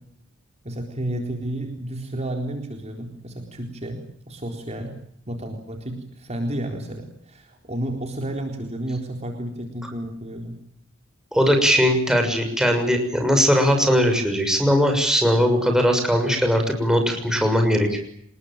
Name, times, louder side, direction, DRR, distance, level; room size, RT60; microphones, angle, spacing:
voice 1, 0.6-4.9 5.3-10.6, right 1 dB, 35° right, 3 dB, 4.0 m, -31 dB
voice 2, 11.3-18.0, equal, 5° right, 4 dB, 6.5 m, -19 dB
27.5 x 21.0 x 9.1 m, 0.67 s
head